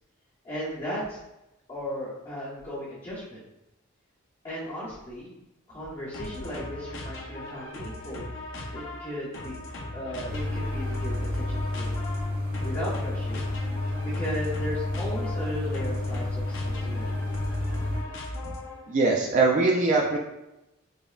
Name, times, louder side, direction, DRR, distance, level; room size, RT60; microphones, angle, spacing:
voice 1, 0.4-1.2 1.7-3.4 4.4-5.4 5.7-8.2 8.7-9.6 9.9-12.0 12.6-13.5 14.1-17.2, equal, 25° left, -12 dB, 1.0 m, -36 dB
sound 1, 6.1-18.9, left 1 dB, 65° left, 0.6 m, -38 dB
sound 2, 10.3-18.0, left 2 dB, 80° right, 1.4 m, -30 dB
voice 2, 18.9-20.2, right 3 dB, 40° right, -1 dB, 0.3 m, -22 dB
5.1 x 2.1 x 2.4 m, 0.93 s
head